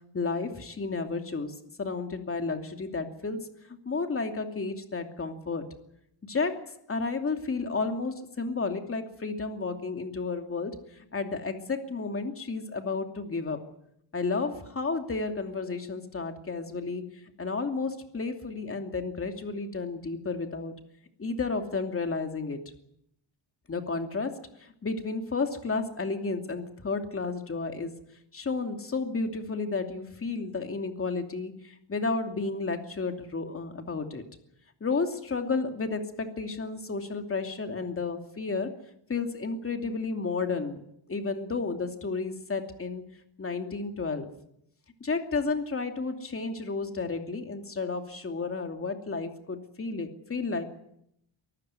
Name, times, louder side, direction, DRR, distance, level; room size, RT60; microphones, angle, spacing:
voice 1, 0.1-3.5 3.9-5.7 6.2-10.8 11.1-13.6 14.1-17.1 17.4-20.7 21.2-22.6 23.7-27.9 28.3-34.2 34.8-38.8 39.1-40.8 41.1-43.1 43.4-44.3 45.0-50.6, left 4 dB, 25° left, 5 dB, 2.7 m, -32 dB
23.5 x 14.5 x 9.6 m, 0.74 s
cardioid pair, 135°, 49 cm